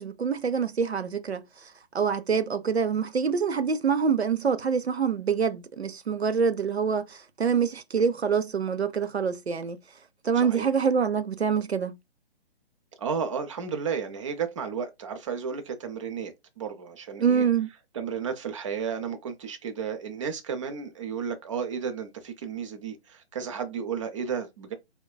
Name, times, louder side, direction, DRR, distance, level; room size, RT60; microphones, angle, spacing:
voice 1, 0.0-9.8 10.2-11.9 17.2-17.7, right 6 dB, 85° right, 0.6 m, -26 dB
voice 2, 10.4-10.7 13.0-17.5 17.9-24.7, right 6 dB, 30° right, 0.6 m, -33 dB
4.7 x 2.2 x 2.3 m
figure-of-eight pair, 135°, 32 cm